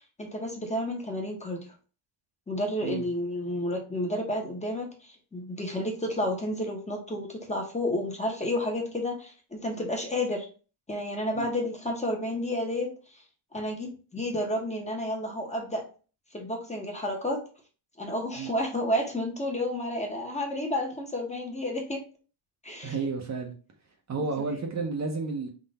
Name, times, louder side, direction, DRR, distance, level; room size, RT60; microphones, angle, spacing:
voice 1, 0.2-1.6 2.5-10.5 10.9-12.9 13.5-15.8 16.3-17.4 18.0-22.0 22.6-23.0, left 1 dB, 15° left, 1.1 m, -31 dB
voice 2, 22.8-23.5 24.1-25.5, right 4 dB, 35° right, 0.8 m, -31 dB
3.8 x 2.6 x 4.0 m
cardioid pair, 115°, 47 cm